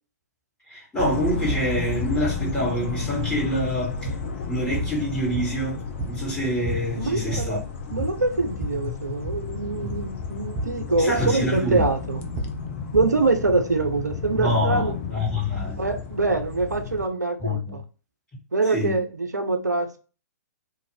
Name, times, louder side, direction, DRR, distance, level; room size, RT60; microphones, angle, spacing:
voice 1, 0.7-4.1 4.5-7.6 11.0-11.8 14.3-15.8 17.4-17.8 18.7-19.0, equal, 10° left, 1.5 m, -26 dB
sound 1, 1.0-17.1, left 5 dB, 40° left, 0.6 m, -32 dB
sound 2, 4.1-4.3 4.7-5.0 5.3-6.4 6.7-6.9 7.2-7.6 7.9-8.8 9.2-9.5 9.8-10.1 10.6-10.8 11.2-13.2, right 1 dB, 20° right, 0.5 m, -31 dB
voice 2, 7.0-7.6 7.9-12.2 12.9-15.0 15.8-17.8 18.5-20.0, right 3 dB, 85° right, 0.4 m, -24 dB
2.5 x 2.5 x 3.1 m
figure-of-eight pair, 120°, 9 cm